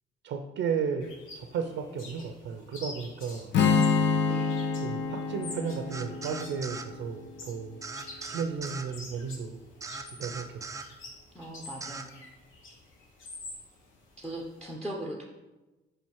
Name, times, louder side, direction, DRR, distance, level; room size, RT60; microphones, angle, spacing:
voice 1, 0.2-3.6 4.8-7.8 8.2-9.6 10.2-10.6, right 6 dB, 70° right, 5 dB, 0.6 m, -34 dB
sound 1, 1.0-14.7, left 2 dB, 85° left, 1.2 m, -48 dB
Strum, 3.5-7.7, left 5 dB, 65° left, 0.7 m, -28 dB
voice 2, 4.3-4.7 11.3-12.2 14.2-15.3, right 1 dB, 5° left, 0 dB, 0.8 m, -39 dB
sound 2, 5.9-6.9 7.8-8.9 9.8-10.9 11.8-12.1, right 3 dB, 15° right, 0.4 m, -40 dB
5.2 x 4.3 x 4.6 m, 1.1 s
cardioid pair, 90°, 20 cm